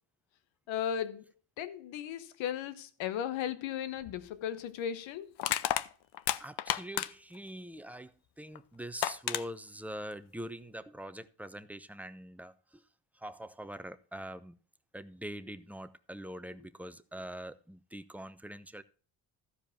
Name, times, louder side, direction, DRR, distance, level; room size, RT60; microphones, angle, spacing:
voice 1, 0.7-1.2 1.6-5.3, left 9 dB, 85° left, 1.2 m, -36 dB
Crushing, 4.0-4.2 5.4-7.4 8.5-8.6 9.0-9.4, left 13 dB, 60° left, 0.7 m, -31 dB
voice 2, 6.4-12.8 13.2-14.6 14.9-18.8, right 1 dB, 5° right, 0.7 m, -44 dB
14.0 x 5.0 x 5.8 m
cardioid pair, 100°, 45 cm